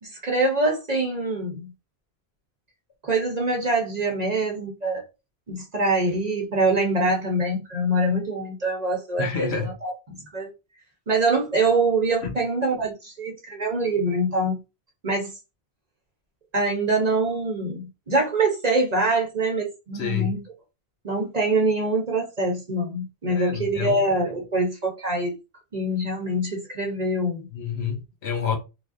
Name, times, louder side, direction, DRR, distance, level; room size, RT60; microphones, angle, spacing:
voice 1, 0.0-1.7 3.0-5.1 5.5-9.5 9.8-10.5 11.1-14.6 15.0-15.4 16.5-20.4 21.0-25.3 25.7-27.5, right 2 dB, 40° right, 0.8 m, -24 dB
voice 2, 9.2-9.8 12.2-12.4 19.9-20.4 23.3-24.1 27.5-28.6, left 6 dB, 70° left, 1.0 m, -28 dB
3.3 x 2.5 x 2.5 m
omnidirectional pair, 1.2 m